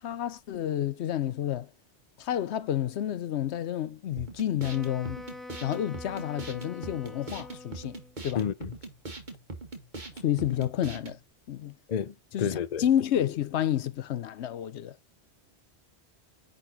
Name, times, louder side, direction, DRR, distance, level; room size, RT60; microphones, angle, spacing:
voice 1, 0.0-1.7 2.2-5.2 5.6-8.0 8.2-8.4 10.2-11.2 11.5-11.7 12.3-15.0, left 11 dB, 80° left, 0.9 m, -30 dB
sound 1, 4.2-11.2, right 2 dB, 45° right, 2.0 m, -41 dB
Wind instrument woodwind instrument, 4.6-8.2, left 2 dB, ahead, 0.6 m, -45 dB
voice 2, 8.4-8.7 11.9-12.8, left 8 dB, 45° left, 0.6 m, -30 dB
10.0 x 4.2 x 4.0 m
omnidirectional pair, 1.1 m